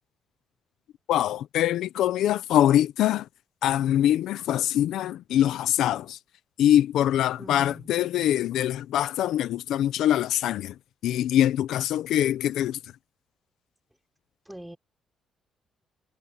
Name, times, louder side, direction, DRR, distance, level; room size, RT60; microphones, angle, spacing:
voice 1, 1.1-3.3 3.6-6.2 6.6-10.7 11.0-12.8, left 11 dB, 85° left, 0.7 m, -23 dB
voice 2, 7.4-8.0 14.5-14.8, right 1 dB, 5° right, 4.7 m, -43 dB
cardioid pair, 140°, 0 cm